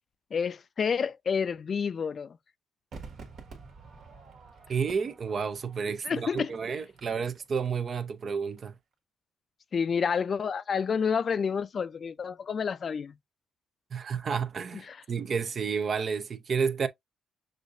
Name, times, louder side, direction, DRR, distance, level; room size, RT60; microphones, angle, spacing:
voice 1, 0.3-2.4 6.0-6.5 9.7-13.1 14.9-15.0, left 6 dB, 45° left, 0.4 m, -29 dB
Crowd / Fireworks, 2.9-8.3 8.6-8.7, right 4 dB, 65° right, 1.6 m, -49 dB
voice 2, 4.7-8.7 13.9-16.9, right 6 dB, 50° right, 0.6 m, -31 dB
6.3 x 2.5 x 2.5 m
cardioid pair, 90°, 0 cm